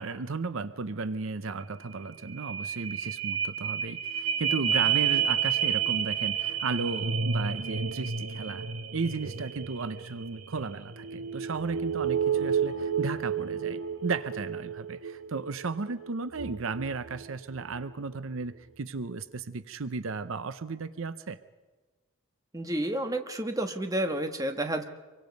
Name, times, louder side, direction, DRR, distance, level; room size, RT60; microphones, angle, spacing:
voice 1, 0.0-8.7 8.9-21.4, right 4 dB, 70° right, 13 dB, 0.7 m, -34 dB
sound 1, 1.6-1.7 2.0-17.9 18.4-18.5, right 7 dB, 85° right, 1.1 m, -31 dB
voice 2, 22.5-24.8, right 1 dB, 15° right, 6 dB, 1.3 m, -30 dB
26.0 x 24.0 x 5.3 m, 1.3 s
head